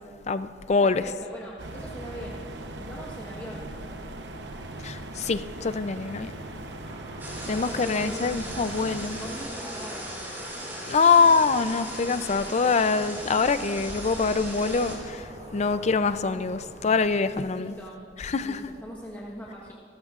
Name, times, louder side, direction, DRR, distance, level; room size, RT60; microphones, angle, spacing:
voice 1, 0.3-1.0 4.8-6.4 7.5-9.2 10.9-17.7 18.2-18.6, left 4 dB, 40° left, 0.5 m, -24 dB
voice 2, 0.8-2.4 2.8-4.0 7.7-8.4 9.1-10.2 17.5-18.0 18.4-19.7, equal, 10° left, 1.2 m, -41 dB
sound 1, 1.6-9.5, right 2 dB, 80° right, 0.9 m, -39 dB
sound 2, 6.7-17.2, equal, 40° right, 2.6 m, -49 dB
sound 3, 7.2-15.0, equal, 15° right, 4.1 m, -37 dB
26.5 x 13.5 x 2.5 m
head